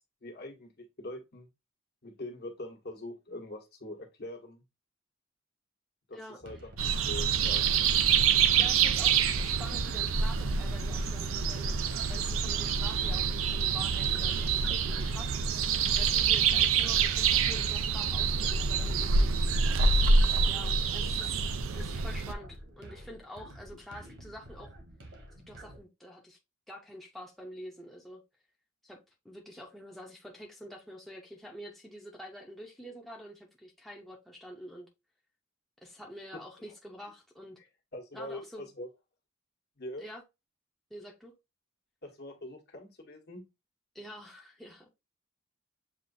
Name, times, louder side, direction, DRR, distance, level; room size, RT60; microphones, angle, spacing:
voice 1, 0.0-1.5 2.0-4.6 6.1-7.7 36.3-36.7 37.6-37.7 37.9-38.9 39.8-40.1 42.0-43.4, left 1 dB, 55° left, 1.3 m, -43 dB
sound 1, 6.4-25.8, right 1 dB, 65° right, 1.3 m, -49 dB
sound 2, 6.8-22.3, right 5 dB, 90° right, 0.5 m, -26 dB
voice 2, 8.6-11.8 12.1-15.3 16.0-19.3 20.5-21.5 21.7-24.7 25.5-26.4 26.7-28.2 28.8-29.0 29.2-34.9 35.8-37.6 38.1-38.7 40.0-40.2 40.9-41.3 43.9-44.9, equal, ahead, 0.7 m, -47 dB
7.5 x 2.5 x 2.6 m
head